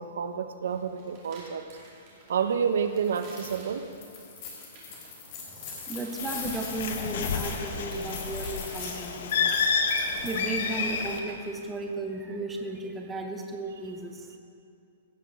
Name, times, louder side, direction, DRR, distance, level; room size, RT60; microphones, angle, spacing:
voice 1, 0.0-1.7 2.3-3.9, right 7 dB, 65° right, 9 dB, 0.7 m, -29 dB
sound 1, 0.6-11.6, right 2 dB, 25° right, 2.5 m, -52 dB
sound 2, 3.0-3.6 3.9-10.6, left 5 dB, 30° left, 2.1 m, -41 dB
voice 2, 5.9-9.6 10.2-14.3, right 2 dB, 5° right, 3 dB, 0.6 m, -35 dB
Bird, 6.2-11.2, left 5 dB, 45° left, 0.9 m, -30 dB
16.5 x 6.0 x 6.1 m, 2.5 s
hypercardioid pair, 180°, 0 cm